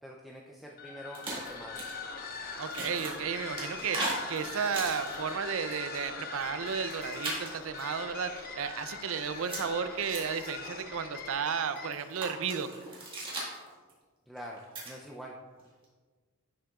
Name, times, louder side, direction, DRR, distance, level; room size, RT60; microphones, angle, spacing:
voice 1, 0.0-1.8 14.3-15.4, equal, ahead, -3 dB, 0.4 m, -45 dB
sound 1, 0.7-12.2, left 4 dB, 45° left, 0.8 m, -41 dB
sound 2, 1.1-1.9 2.5-5.3 5.7-6.0 6.7-7.9 9.2-10.5 11.7-13.9 14.4-14.9 15.6-15.8, right 2 dB, 25° right, 1.6 m, -38 dB
voice 2, 2.6-12.7, right 6 dB, 65° right, 11 dB, 0.4 m, -33 dB
9.8 x 6.5 x 2.4 m, 1.4 s
head